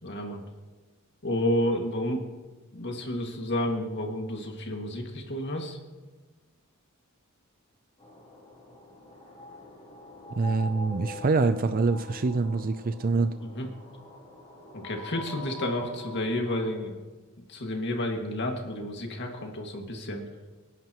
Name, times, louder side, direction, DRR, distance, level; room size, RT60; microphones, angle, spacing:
voice 1, 0.0-0.4 1.2-2.2 2.7-5.8 13.4-13.7 14.7-17.0 17.5-20.3, left 1 dB, 55° left, 2 dB, 2.1 m, -30 dB
sound 1, 8.0-16.7, left 2 dB, 30° left, 3.6 m, -43 dB
voice 2, 10.3-13.3, right 3 dB, 40° right, 10 dB, 0.5 m, -25 dB
27.0 x 11.0 x 3.0 m, 1.3 s
head